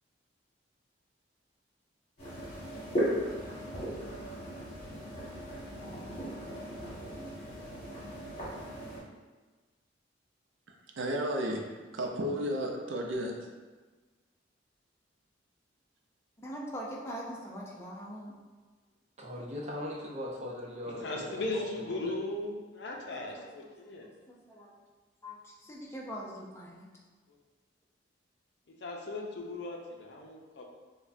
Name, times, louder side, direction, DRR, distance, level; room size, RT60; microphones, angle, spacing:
sound 1, 2.2-9.0, equal, 35° left, 1.4 m, -37 dB
voice 1, 11.0-13.3, equal, 90° right, 1 dB, 0.5 m, -33 dB
voice 2, 16.4-18.4 23.6-23.7 24.0-24.7 25.2-26.9, equal, 15° left, -4 dB, 0.5 m, -42 dB
voice 3, 19.2-21.6 21.9-22.2, left 1 dB, 35° right, -4 dB, 0.7 m, -40 dB
voice 4, 21.0-24.1 28.8-30.6, left 2 dB, 65° left, 0 dB, 0.5 m, -37 dB
4.9 x 2.2 x 2.6 m, 1.3 s
head